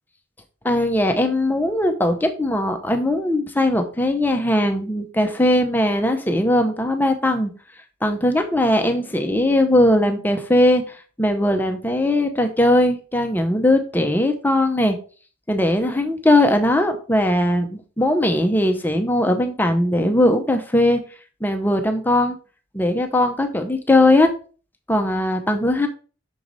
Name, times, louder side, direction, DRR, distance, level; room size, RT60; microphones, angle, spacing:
voice 1, 0.6-7.5 8.0-15.0 15.5-21.0 21.4-22.4 22.7-24.3 24.9-25.9, left 1 dB, 10° left, 5 dB, 0.7 m, -19 dB
6.3 x 4.6 x 4.0 m, 0.38 s
head